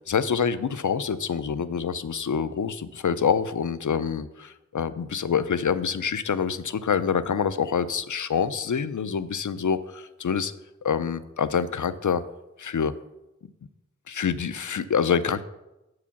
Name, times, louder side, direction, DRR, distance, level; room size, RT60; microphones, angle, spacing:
voice 1, 0.1-4.3 4.7-10.5 10.8-12.2 12.6-12.9 14.1-15.4, left 6 dB, 85° left, 13 dB, 0.5 m, -26 dB
8.1 x 4.8 x 7.0 m, 0.93 s
wide cardioid pair, 55°, 30 cm